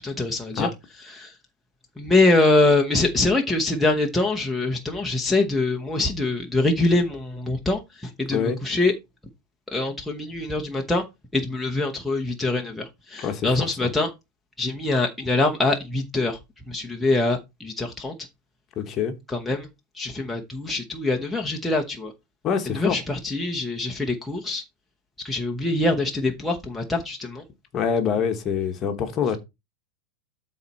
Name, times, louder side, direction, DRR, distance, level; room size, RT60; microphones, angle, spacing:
voice 1, 0.0-0.7 1.1-1.3 2.0-8.9 9.7-11.0 11.3-14.1 14.6-16.4 16.7-18.1 19.3-19.7 20.0-22.1 22.7-24.6 25.2-27.4, left 2 dB, 5° left, 0.9 m, -24 dB
voice 2, 18.8-19.1 22.4-23.0 27.7-29.4, left 7 dB, 25° left, 1.3 m, -25 dB
12.5 x 4.2 x 4.1 m
supercardioid pair, 160°, 0 cm